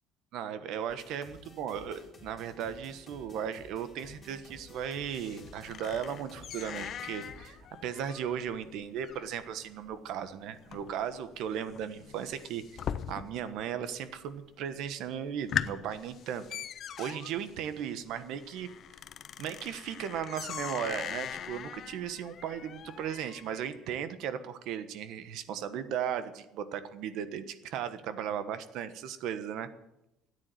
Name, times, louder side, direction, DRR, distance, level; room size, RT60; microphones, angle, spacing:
voice 1, 0.3-16.5 17.0-18.7 19.4-29.7, right 8 dB, 60° right, 11 dB, 1.3 m, -36 dB
sound 1, 0.9-7.5, left 3 dB, 20° left, 3.2 m, -53 dB
sound 2, 4.0-13.6 13.9-14.5 14.9-15.0 15.3-23.6, left 9 dB, 40° left, 0.6 m, -41 dB
13.5 x 9.8 x 9.1 m, 0.86 s
cardioid pair, 160°, 0 cm